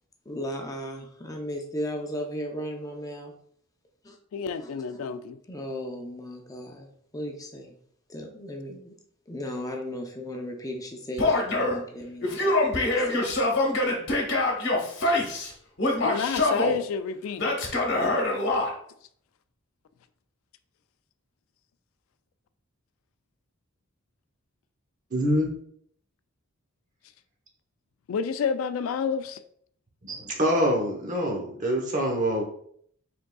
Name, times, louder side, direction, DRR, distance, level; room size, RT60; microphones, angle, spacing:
voice 1, 0.3-3.3 4.0-4.2 4.6-5.0 5.5-7.7 8.1-9.0 9.3-13.3, equal, 15° left, 2 dB, 0.5 m, -36 dB
voice 2, 4.3-5.4 16.0-17.5 28.1-29.4, left 6 dB, 80° left, 11 dB, 0.3 m, -29 dB
Male speech man speaking / Yell, 11.2-11.8 12.2-15.5 15.8-16.8 17.4-18.7, left 2 dB, 55° left, 1.0 m, -24 dB
voice 3, 25.1-25.5 30.0-32.4, equal, 40° right, 1 dB, 0.9 m, -25 dB
5.1 x 3.6 x 2.3 m, 0.64 s
head